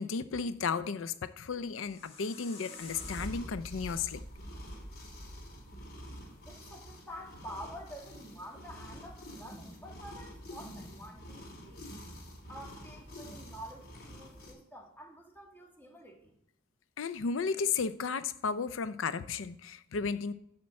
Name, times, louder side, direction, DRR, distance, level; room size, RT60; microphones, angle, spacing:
voice 1, 0.0-4.2 17.0-20.3, left 5 dB, 85° left, 13 dB, 0.5 m, -34 dB
sound 1, 1.6-6.6, equal, 30° left, 1.8 m, -47 dB
sound 2, 2.9-14.5, equal, 55° left, 3.1 m, -48 dB
voice 2, 6.4-11.9 12.5-16.3, equal, 10° left, 0 dB, 2.1 m, -48 dB
10.5 x 4.4 x 7.4 m, 0.74 s
head